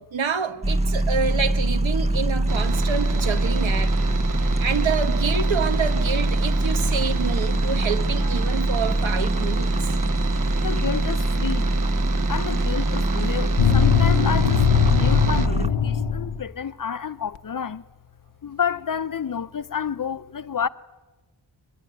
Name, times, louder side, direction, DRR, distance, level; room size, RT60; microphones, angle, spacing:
voice 1, 0.1-3.9 4.6-9.7 10.2-10.3, right 6 dB, 75° right, 1.6 m, -27 dB
sound 1, 0.6-15.7, right 1 dB, 15° right, 0.7 m, -23 dB
sound 2, 2.5-15.5, right 6 dB, 45° right, 0.8 m, -34 dB
voice 2, 10.6-11.6 12.3-14.6 14.9-17.8 18.6-20.7, left 7 dB, 45° left, 0.8 m, -29 dB
sound 3, 13.6-16.4, left 7 dB, 80° left, 1.0 m, -20 dB
23.0 x 20.0 x 9.3 m
wide cardioid pair, 125°, 46 cm